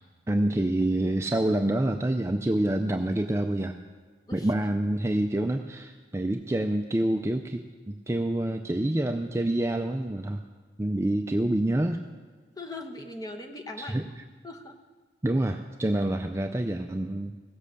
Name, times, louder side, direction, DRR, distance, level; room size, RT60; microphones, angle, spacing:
voice 1, 0.3-3.8 4.3-10.4 10.8-12.0 13.8-14.0 15.2-17.4, right 1 dB, 15° right, 5 dB, 0.4 m, -27 dB
voice 2, 12.6-14.2 14.4-14.8, left 2 dB, 20° left, 3 dB, 0.9 m, -40 dB
16.5 x 7.5 x 6.6 m, 1.4 s
head